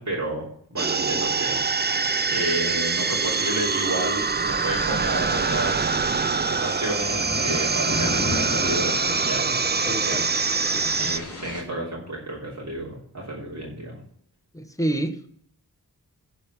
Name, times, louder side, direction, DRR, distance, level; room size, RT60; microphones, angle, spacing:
voice 1, 0.0-6.0 6.5-10.3 11.0-14.0, right 1 dB, 45° right, -5 dB, 3.1 m, -31 dB
sound 1, 0.8-11.2, right 4 dB, 25° right, 0.5 m, -24 dB
sound 2, 3.2-11.6, left 2 dB, 35° left, 4.9 m, -34 dB
voice 2, 9.8-10.3 10.6-11.0 14.5-15.2, right 1 dB, 10° left, 6 dB, 1.2 m, -29 dB
10.5 x 4.9 x 7.9 m, 0.63 s
wide cardioid pair, 100°, 38 cm